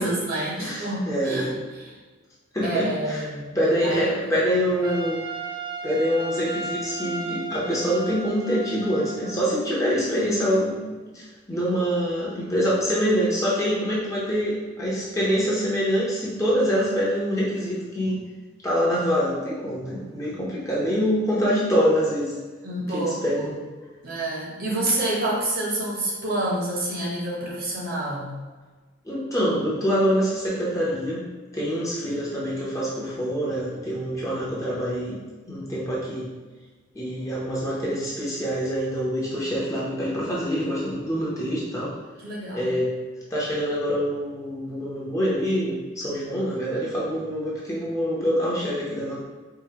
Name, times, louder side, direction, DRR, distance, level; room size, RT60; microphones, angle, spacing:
voice 1, 0.0-2.0 2.6-4.3 4.8-4.9 22.6-23.5 24.0-28.3 42.2-42.7, right 1 dB, 40° right, -4 dB, 0.9 m, -28 dB
voice 2, 0.6-1.6 2.5-3.2 3.5-5.2 5.8-18.2 18.6-22.3 22.9-23.5 29.0-31.3 31.5-35.2 35.5-36.3 36.9-41.9 42.5-42.9 43.3-49.2, equal, 15° left, -6 dB, 0.7 m, -25 dB
Trumpet, 4.8-9.4, right 2 dB, 20° right, 0.3 m, -35 dB
4.7 x 2.6 x 2.8 m, 1.3 s
head